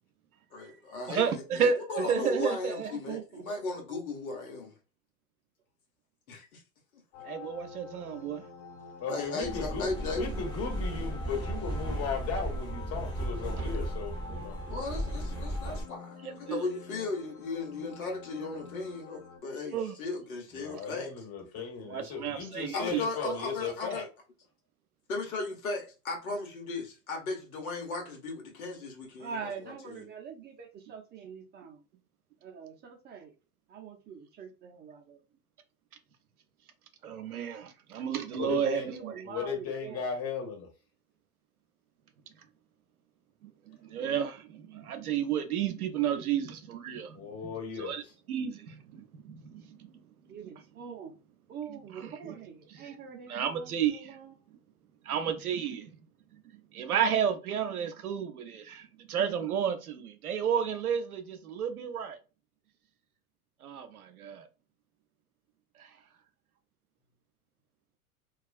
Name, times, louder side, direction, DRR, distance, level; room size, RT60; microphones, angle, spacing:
voice 1, 0.5-4.7 6.3-6.4 9.1-10.2 14.7-21.1 22.7-24.1 25.1-29.5 29.8-30.0, left 3 dB, 75° left, 1.2 m, -36 dB
voice 2, 1.1-2.9 7.3-8.4 16.2-16.7 19.7-20.0 21.9-23.3 37.0-39.1 43.9-44.4 44.7-47.2 47.8-48.0 48.3-49.6 52.0-52.3 53.3-54.1 55.1-55.9 56.7-58.8 59.1-62.2 63.6-63.9 64.2-64.4, right 8 dB, 90° right, 0.6 m, -31 dB
voice 3, 2.9-3.4 29.2-31.8 32.4-33.3 33.7-35.2 38.4-40.0 50.3-51.2 51.5-54.3, right 6 dB, 25° right, 0.5 m, -44 dB
sound 1, 7.1-19.4, left 5 dB, 55° left, 1.2 m, -48 dB
voice 4, 9.0-9.9 10.1-14.6 20.5-24.1 38.3-40.7 47.1-48.1, left 5 dB, 35° left, 1.3 m, -36 dB
sound 2, 9.4-15.8, right 1 dB, 10° left, 0.9 m, -35 dB
2.3 x 2.3 x 2.4 m
hypercardioid pair, 95°, 43 cm